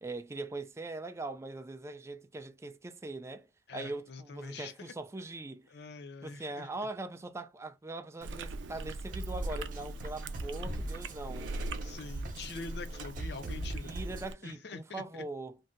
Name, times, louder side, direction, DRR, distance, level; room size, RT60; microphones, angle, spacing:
voice 1, 0.0-3.5 3.7-5.7 6.2-11.5 13.8-15.6, right 2 dB, 15° right, 0.3 m, -41 dB
voice 2, 3.7-4.9 5.7-6.7 11.8-13.9 14.4-15.2, left 4 dB, 65° left, 0.5 m, -45 dB
Chewing mastication, 8.2-14.3, right 2 dB, 90° right, 0.4 m, -40 dB
sound 1, 9.1-14.3, right 2 dB, 45° right, 0.7 m, -42 dB
2.6 x 2.1 x 3.6 m
head